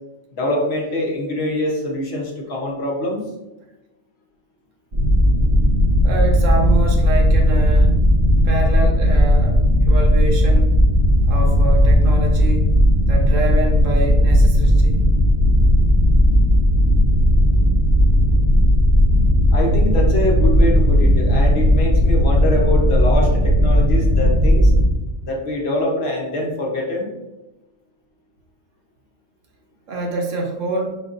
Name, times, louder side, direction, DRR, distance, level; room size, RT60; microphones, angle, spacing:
voice 1, 0.3-3.3 19.5-24.7 25.2-27.1, left 1 dB, 55° left, -1 dB, 1.1 m, -24 dB
sound 1, 4.9-24.9, equal, 35° right, 0.6 m, -15 dB
voice 2, 6.0-7.9 8.4-10.7 11.3-12.7 13.1-15.0 29.9-30.9, right 2 dB, 75° right, 1 dB, 1.2 m, -26 dB
4.4 x 4.0 x 2.5 m, 1.0 s
omnidirectional pair, 1.3 m